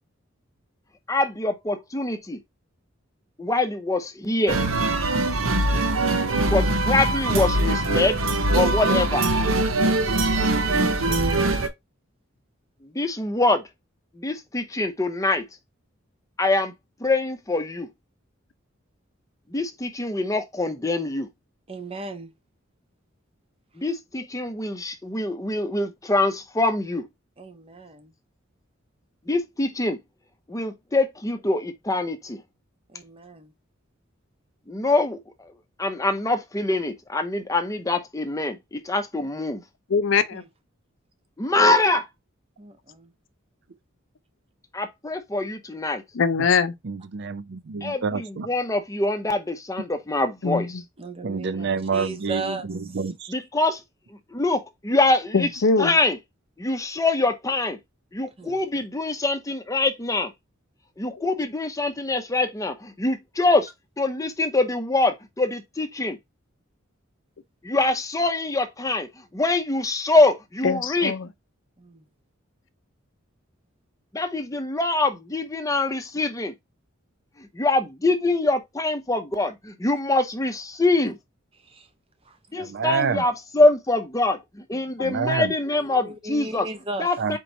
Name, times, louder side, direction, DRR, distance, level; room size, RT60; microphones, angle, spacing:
voice 1, 1.1-2.4 3.4-4.6 6.4-8.2 8.5-9.3 12.8-13.6 14.1-15.4 16.4-16.7 17.0-17.9 19.5-21.3 23.8-27.1 29.3-30.0 30.5-32.4 34.7-35.2 35.8-39.6 41.4-42.1 44.7-46.0 47.8-50.8 53.3-53.8 54.3-55.5 55.8-56.2 56.6-57.8 58.1-60.3 61.0-63.7 64.0-66.2 67.6-71.1 74.1-76.5 77.4-81.2 82.5-86.7 87.0-87.4, left 2 dB, 15° left, 0.7 m, -24 dB
sound 1, 4.5-11.7, right 2 dB, 80° right, 0.8 m, -22 dB
voice 2, 21.7-22.3 27.4-28.1 32.9-33.5 40.3-40.5 42.6-43.1 51.0-52.6 58.4-58.6 71.8-72.0 81.7-81.9 82.3-82.4 84.7-84.8 85.8-87.1, right 3 dB, 30° right, 0.8 m, -36 dB
voice 3, 39.9-40.4 46.1-46.7 50.4-50.8 55.3-55.9 61.2-61.3 70.6-71.3, left 5 dB, 65° left, 0.5 m, -22 dB
voice 4, 46.8-48.5 51.2-53.3 82.6-83.2 85.0-85.5 87.2-87.4, right 5 dB, 60° right, 0.5 m, -28 dB
4.5 x 3.0 x 3.9 m
head